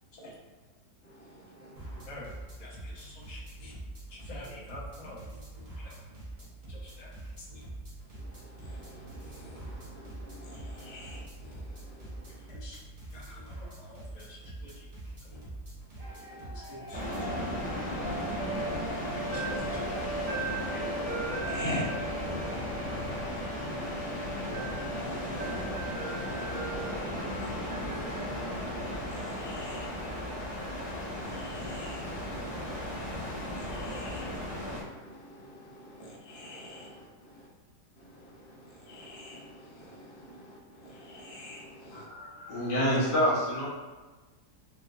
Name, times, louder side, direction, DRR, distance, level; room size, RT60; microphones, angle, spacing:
voice 1, 1.0-2.0 8.1-12.5 15.3-15.4 16.0-16.5 21.4-37.5 37.9-42.1, left 1 dB, 65° left, -3 dB, 0.5 m, -46 dB
sound 1, 1.8-17.4, right 1 dB, 35° right, 0.9 m, -44 dB
voice 2, 2.6-3.7 4.1-5.2 5.8-5.9 6.7-7.1 12.5-12.8 13.1-14.9 16.5-17.0 17.4-17.5 18.3-19.9 20.7-20.8, left 1 dB, 35° left, -7 dB, 0.8 m, -47 dB
sound 2, 16.0-30.1, right 2 dB, 70° right, 1.2 m, -40 dB
sound 3, 16.9-34.8, left 1 dB, 5° right, 0.7 m, -35 dB
voice 3, 41.9-43.7, equal, 90° left, -7 dB, 1.7 m, -28 dB
4.6 x 2.1 x 2.4 m, 1.2 s
omnidirectional pair, 1.7 m